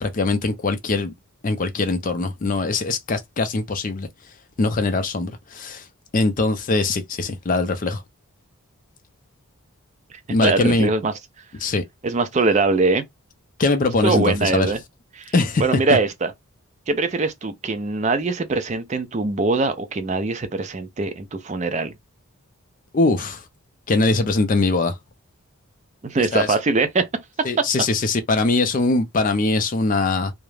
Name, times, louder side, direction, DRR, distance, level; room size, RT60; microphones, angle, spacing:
voice 1, 0.0-1.1 1.4-4.1 4.6-5.8 6.1-8.0 10.3-10.9 11.6-11.8 13.6-14.7 15.3-15.6 22.9-23.4 23.9-24.9 26.3-26.5 27.4-30.3, left 3 dB, 35° left, 0.4 m, -21 dB
voice 2, 10.4-11.1 12.0-13.0 14.0-14.8 15.1-15.3 15.6-16.3 16.9-21.9 26.0-27.1, right 3 dB, 30° right, 0.4 m, -22 dB
2.4 x 2.0 x 3.1 m
head